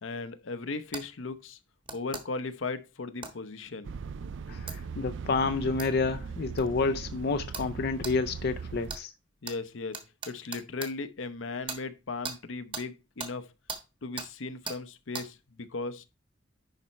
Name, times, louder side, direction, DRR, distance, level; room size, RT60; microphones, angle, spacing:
voice 1, 0.0-1.6 1.9-3.9 9.4-13.5 14.0-16.0, left 3 dB, 80° left, 0.8 m, -37 dB
sound 1, 0.9-1.1 1.9-2.2 3.2-3.4 4.7-4.8 5.8-5.9 6.6-6.7 7.5-7.7 8.0-8.2 8.9-9.0 9.5-9.6 9.9-10.9 11.7-11.8 12.2-12.4 12.7-12.9 13.2-13.3 13.7-13.8 14.2-14.3 14.7-14.8 15.1-15.3, right 4 dB, 25° right, 1.4 m, -38 dB
sound 2, 3.8-9.0, right 5 dB, 70° right, 0.4 m, -39 dB
voice 2, 4.5-9.1, left 4 dB, 55° left, 0.4 m, -29 dB
10.5 x 4.2 x 4.4 m
head